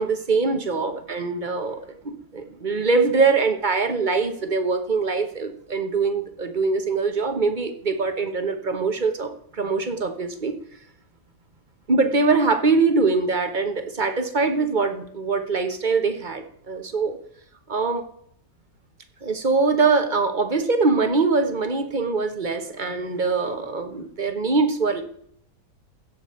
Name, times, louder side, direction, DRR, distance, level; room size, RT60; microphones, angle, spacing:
voice 1, 0.0-10.5 11.9-17.2 17.7-18.0 19.2-25.0, right 4 dB, 30° right, 7 dB, 1.1 m, -23 dB
16.0 x 6.9 x 4.4 m, 0.66 s
omnidirectional pair, 1.8 m